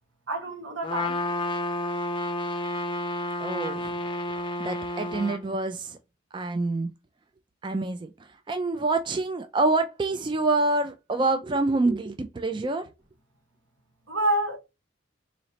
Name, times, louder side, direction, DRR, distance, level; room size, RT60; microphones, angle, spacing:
voice 1, 0.3-1.2 14.1-14.6, right 1 dB, 70° right, 1.2 m, -27 dB
Trumpet, 0.8-5.4, left 1 dB, 25° left, 0.5 m, -30 dB
voice 2, 3.4-4.0 4.6-6.0 6.3-6.9 7.6-12.9, right 2 dB, 25° right, 0.3 m, -27 dB
3.9 x 3.1 x 2.7 m
head